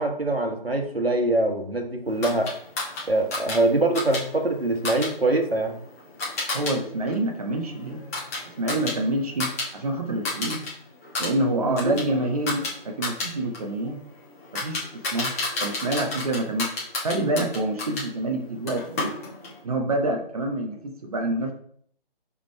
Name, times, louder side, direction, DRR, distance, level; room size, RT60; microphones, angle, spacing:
voice 1, 0.0-2.5 3.1-5.7 11.6-12.0, right 2 dB, 90° right, 3 dB, 1.7 m, -24 dB
sound 1, 2.2-6.7 7.1-9.7 10.0-10.7 11.0-18.1 18.7-19.6, left 2 dB, 15° left, 1.4 m, -32 dB
voice 2, 6.5-8.0 8.6-10.6 11.2-14.0 14.5-14.8 15.1-15.3 15.6-16.7 17.0-19.1 19.6-21.5, right 1 dB, 40° right, 3 dB, 1.1 m, -27 dB
5.2 x 5.1 x 4.4 m, 0.63 s
figure-of-eight pair, 155°, 29 cm